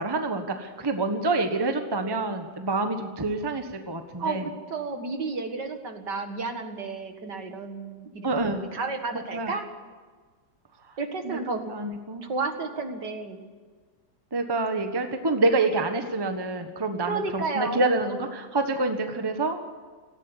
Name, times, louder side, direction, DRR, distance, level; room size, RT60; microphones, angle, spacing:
voice 1, 0.0-4.4 8.2-8.6 9.3-9.5 11.2-11.4 11.7-12.2 14.3-19.6, right 2 dB, 15° right, 6 dB, 1.2 m, -27 dB
voice 2, 4.2-9.6 11.0-11.6 12.2-13.5 17.0-17.8, right 3 dB, 60° right, 6 dB, 2.4 m, -32 dB
17.5 x 15.0 x 10.0 m, 1.4 s
omnidirectional pair, 2.2 m